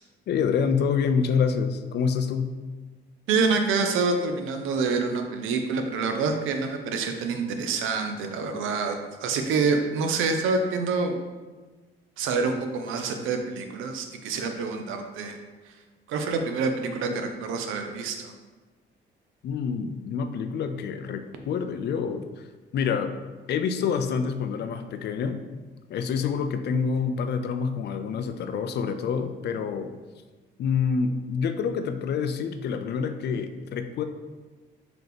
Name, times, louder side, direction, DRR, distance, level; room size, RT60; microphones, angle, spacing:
voice 1, 0.3-2.5 19.4-22.2 22.7-23.1 23.5-25.4 25.9-29.9 30.6-34.0, left 6 dB, 60° left, 8 dB, 0.4 m, -27 dB
voice 2, 3.3-9.0 9.2-11.2 12.2-15.4 16.1-18.3, right 4 dB, 90° right, 5 dB, 0.5 m, -27 dB
3.9 x 2.9 x 3.3 m, 1.3 s
cardioid pair, 90°, 20 cm